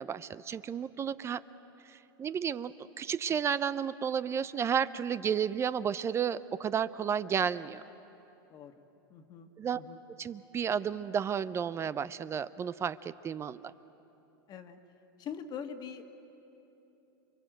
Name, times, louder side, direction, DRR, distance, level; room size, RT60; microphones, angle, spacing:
voice 1, 0.0-1.4 1.8-7.8 9.6-9.8 10.2-13.7, right 7 dB, 20° right, 15 dB, 0.5 m, -32 dB
voice 2, 9.1-10.0 14.5-14.8 15.2-16.1, left 7 dB, 35° left, 6 dB, 1.6 m, -43 dB
28.5 x 22.5 x 7.9 m, 3.0 s
hypercardioid pair, 120°, 12 cm